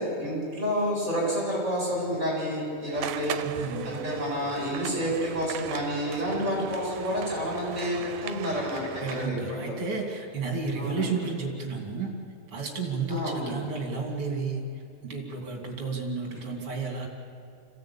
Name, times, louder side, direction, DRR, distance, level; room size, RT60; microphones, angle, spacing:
voice 1, 0.0-3.4 3.8-9.8 10.8-11.1 13.1-13.5, equal, 20° right, -3 dB, 7.7 m, -29 dB
sound 1, 2.9-9.3, right 12 dB, 85° right, 2.3 m, -38 dB
voice 2, 3.4-4.0 9.0-12.1 12.5-14.6 15.0-17.1, right 4 dB, 45° right, 0 dB, 3.8 m, -32 dB
26.0 x 16.5 x 8.8 m, 2.6 s
omnidirectional pair, 3.5 m